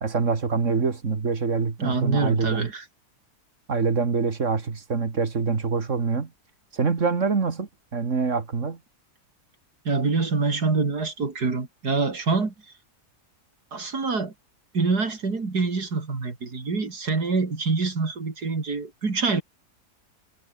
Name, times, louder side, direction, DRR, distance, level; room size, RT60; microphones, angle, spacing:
voice 1, 0.0-2.7 3.7-6.3 6.7-8.8, right 4 dB, 50° right, 2.4 m, -25 dB
voice 2, 1.8-2.8 9.9-12.5 13.7-14.3 14.7-19.4, right 4 dB, 75° right, 3.8 m, -25 dB
omnidirectional pair, 1.7 m